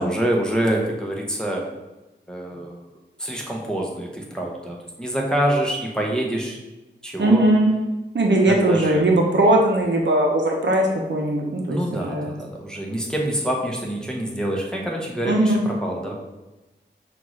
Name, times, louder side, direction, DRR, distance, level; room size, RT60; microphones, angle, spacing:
voice 1, 0.0-1.6 2.3-2.9 3.2-6.6 7.0-7.4 8.5-9.0 11.7-16.1, right 1 dB, 5° left, -3 dB, 1.0 m, -26 dB
voice 2, 7.2-7.8 8.1-12.3 15.2-15.6, right 1 dB, 70° right, 0 dB, 0.7 m, -19 dB
5.7 x 2.5 x 3.1 m, 1.1 s
wide cardioid pair, 50°, 19 cm